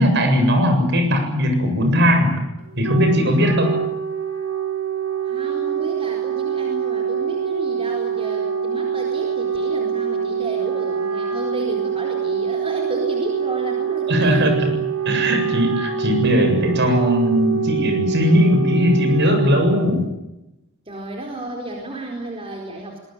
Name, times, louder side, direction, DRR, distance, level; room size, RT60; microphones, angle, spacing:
voice 1, 0.0-2.4 2.8-3.8 14.1-14.7 15.0-20.0, equal, 50° right, 6 dB, 7.6 m, -18 dB
Wind instrument woodwind instrument, 2.6-20.1, right 7 dB, 85° right, 5.5 m, -25 dB
voice 2, 5.2-14.5 20.9-23.0, right 1 dB, 25° right, 0 dB, 4.3 m, -32 dB
25.5 x 21.5 x 9.1 m, 0.94 s
head